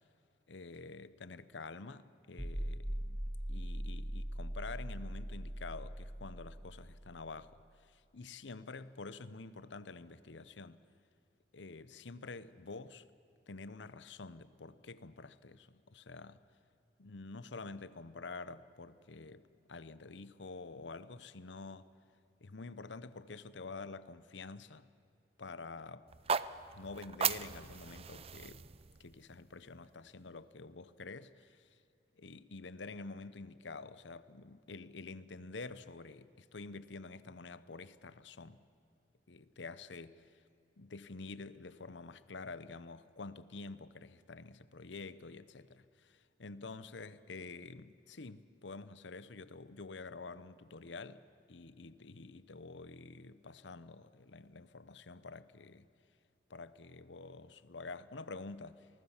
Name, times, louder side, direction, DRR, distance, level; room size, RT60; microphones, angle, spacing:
voice 1, 0.5-3.2 3.5-10.8 11.5-13.0 13.5-16.4 17.0-21.9 22.4-24.9 25.4-26.1 26.7-28.7 29.0-31.7 32.2-38.6 39.3-40.2 40.8-55.9 56.5-58.9, left 3 dB, 75° left, 0.9 m, -48 dB
sound 1, 2.4-7.4, equal, 10° right, 1.5 m, -41 dB
sound 2, 26.1-30.2, right 7 dB, 35° right, 0.6 m, -38 dB
28.0 x 19.5 x 7.3 m
head